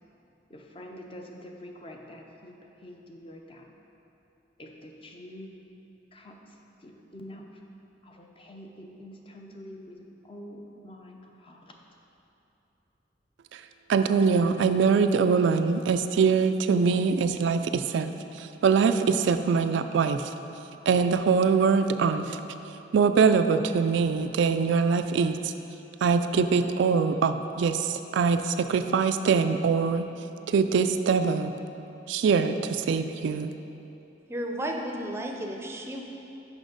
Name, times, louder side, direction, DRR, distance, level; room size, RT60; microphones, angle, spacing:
voice 1, 0.5-3.7 4.6-5.5 6.1-6.4 6.8-7.5 8.0-10.0 10.2-11.8, left 1 dB, 30° left, 1 dB, 0.6 m, -46 dB
voice 2, 13.9-18.1 18.4-20.3 20.9-22.4 22.9-25.5 26.0-30.0 30.5-31.5 32.1-33.5, right 5 dB, 75° right, 9 dB, 0.3 m, -23 dB
voice 3, 34.3-36.0, right 1 dB, 15° right, 1 dB, 0.5 m, -33 dB
6.2 x 5.5 x 5.1 m, 3.0 s
head